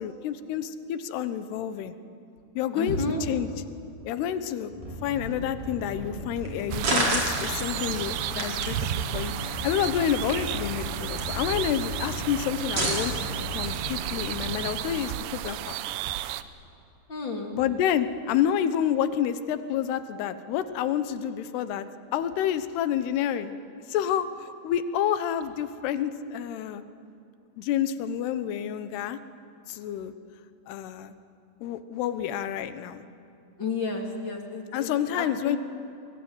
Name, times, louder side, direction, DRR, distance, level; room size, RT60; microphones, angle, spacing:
voice 1, 0.0-1.9 2.6-3.5 4.1-4.7 5.0-15.7 17.5-21.9 22.1-23.5 23.9-26.8 27.6-29.2 29.7-30.1 30.7-31.1 31.6-33.0 34.7-35.6, left 9 dB, 85° left, 11 dB, 3.1 m, -29 dB
voice 2, 2.7-3.2 17.1-17.5 33.6-34.9 35.2-35.6, left 3 dB, 35° left, 2 dB, 2.7 m, -31 dB
sound 1, 4.7-14.6, equal, 10° right, 2.7 m, -38 dB
sound 2, 6.3-15.1, right 1 dB, 40° right, 5.6 m, -33 dB
sound 3, 6.7-16.4, right 12 dB, 85° right, 2.8 m, -33 dB
23.0 x 22.5 x 9.6 m, 2.6 s
omnidirectional pair, 4.6 m